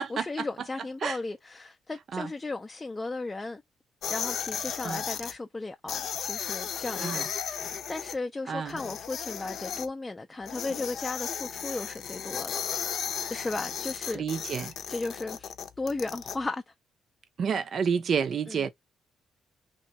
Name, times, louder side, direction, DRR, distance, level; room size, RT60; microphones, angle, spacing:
voice 1, 0.0-3.6 4.1-12.6 12.9-14.2 14.9-16.7 18.5-18.7, left 3 dB, 20° left, 0.4 m, -36 dB
sound 1, 4.0-5.3 5.9-8.1 8.7-9.9 10.5-16.4, left 8 dB, 70° left, 0.6 m, -35 dB
voice 2, 8.5-8.8 14.1-14.7 17.4-18.7, right 6 dB, 55° right, 0.6 m, -29 dB
3.0 x 2.6 x 4.2 m
cardioid pair, 90°, 0 cm